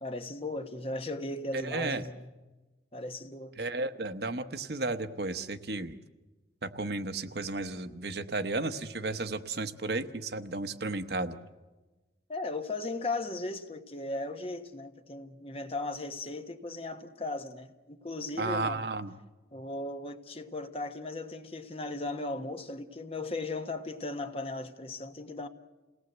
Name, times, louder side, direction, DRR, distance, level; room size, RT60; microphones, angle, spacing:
voice 1, 0.0-2.3 2.9-3.5 12.3-18.8 19.5-25.5, left 2 dB, 35° left, 1.3 m, -37 dB
voice 2, 1.5-2.0 3.6-6.0 6.6-11.4 18.4-19.1, right 3 dB, 65° right, 1.0 m, -33 dB
28.5 x 18.0 x 8.0 m
head